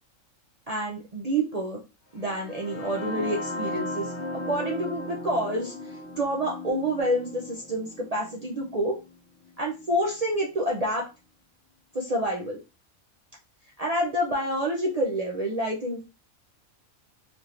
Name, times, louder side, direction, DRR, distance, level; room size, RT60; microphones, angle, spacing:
voice 1, 0.7-1.8 2.1-5.7 6.2-9.0 9.6-11.1 11.9-12.6 13.8-16.0, right 1 dB, 60° right, -2 dB, 0.4 m, -28 dB
sound 1, 2.2-10.1, left 2 dB, 20° left, 1.3 m, -37 dB
3.5 x 2.9 x 2.5 m, 0.29 s
omnidirectional pair, 1.4 m